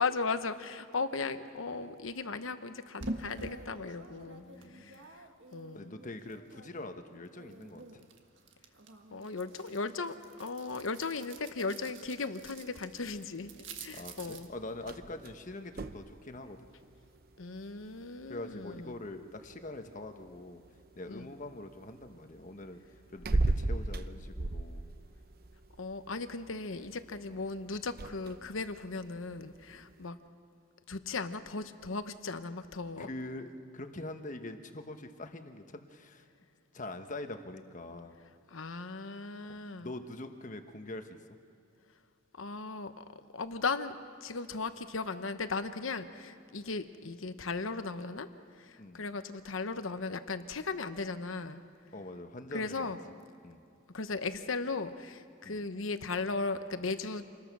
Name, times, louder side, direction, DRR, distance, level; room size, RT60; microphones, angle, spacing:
voice 1, 0.0-4.4 4.7-5.0 5.5-5.9 9.1-13.5 13.8-14.5 17.4-18.9 21.1-21.3 25.8-30.2 30.9-33.1 38.5-39.9 42.4-43.0 43.3-43.9 44.2-48.3 48.6-51.6 52.5-53.0 53.9-57.2, left 4 dB, 80° left, 10 dB, 1.0 m, -37 dB
sound 1, 3.0-6.9 7.3-14.5, right 2 dB, 65° right, 1.6 m, -47 dB
voice 2, 4.4-5.0 5.7-8.0 13.9-16.7 18.3-20.6 21.0-22.8 23.1-24.8 29.7-29.8 33.0-36.3 36.7-38.2 39.5-41.2 48.8-49.1 51.9-53.0 53.4-53.6 55.4-55.7, left 2 dB, 40° left, 7 dB, 1.2 m, -44 dB
sound 2, 13.4-30.1, right 2 dB, 50° right, 0.7 m, -40 dB
27.5 x 20.5 x 6.2 m, 2.5 s
head